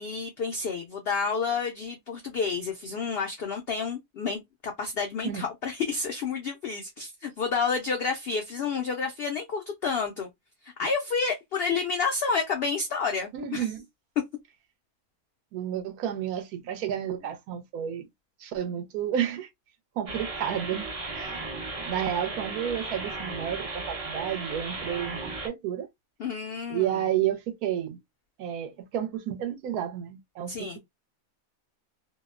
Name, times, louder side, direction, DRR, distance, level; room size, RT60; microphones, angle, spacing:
voice 1, 0.0-10.3 10.6-13.7 26.2-27.0 30.5-30.8, left 5 dB, 80° left, 0.5 m, -30 dB
voice 2, 13.3-13.8 15.5-18.1 18.4-19.5 20.0-21.5 21.8-25.9 26.7-28.0 28.4-30.8, right 10 dB, 80° right, 1.1 m, -31 dB
sound 1, 20.1-25.5, right 3 dB, 35° right, 0.6 m, -35 dB
2.8 x 2.0 x 2.3 m
omnidirectional pair, 1.6 m